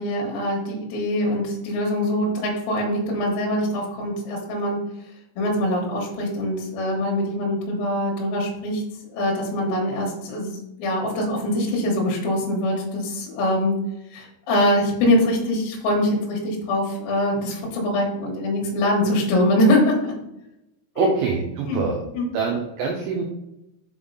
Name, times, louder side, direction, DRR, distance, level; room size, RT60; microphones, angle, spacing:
voice 1, 0.0-4.8 5.4-8.8 9.1-13.8 14.1-20.2 21.0-21.1 21.7-21.9 22.1-22.3, left 1 dB, 70° left, -1 dB, 3.2 m, -23 dB
voice 2, 21.0-22.0 22.3-23.3, right 4 dB, 85° right, 1 dB, 2.5 m, -24 dB
7.0 x 3.6 x 3.9 m, 0.87 s
omnidirectional pair, 5.8 m